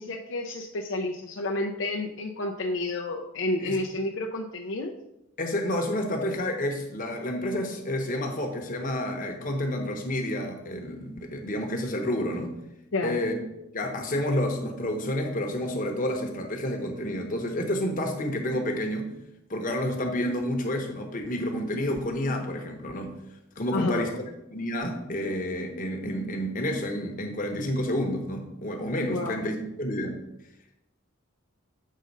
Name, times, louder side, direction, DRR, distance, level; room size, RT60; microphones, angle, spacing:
voice 1, 0.0-4.9 12.9-13.2 23.7-24.1 29.1-29.4, left 2 dB, 65° left, 1 dB, 0.6 m, -30 dB
voice 2, 5.4-12.5 13.0-13.3 13.7-19.1 19.5-23.1 23.6-24.1 24.5-30.2, left 1 dB, 40° left, 3 dB, 1.0 m, -29 dB
7.5 x 3.7 x 5.3 m, 0.87 s
head